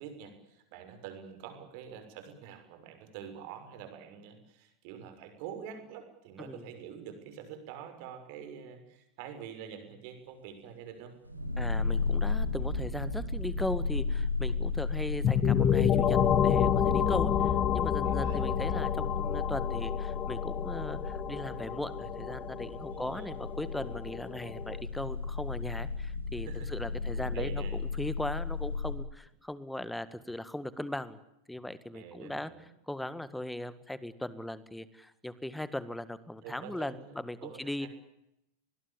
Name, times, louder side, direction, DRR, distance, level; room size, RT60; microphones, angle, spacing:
voice 1, 0.0-11.1 18.0-18.4 22.9-23.3 26.5-26.7 26.9-27.8 31.9-32.6 36.4-37.2 37.4-37.9, right 8 dB, 45° right, 8 dB, 6.4 m, -46 dB
sound 1, 11.2-29.0, left 4 dB, 90° left, 3.8 m, -34 dB
voice 2, 11.6-27.6 27.9-31.2 31.5-32.5 32.9-37.9, left 1 dB, 5° left, 16 dB, 1.8 m, -38 dB
sound 2, 15.2-24.8, left 9 dB, 25° left, 1.0 m, -29 dB
25.5 x 21.0 x 8.6 m, 0.83 s
figure-of-eight pair, 90°, 0 cm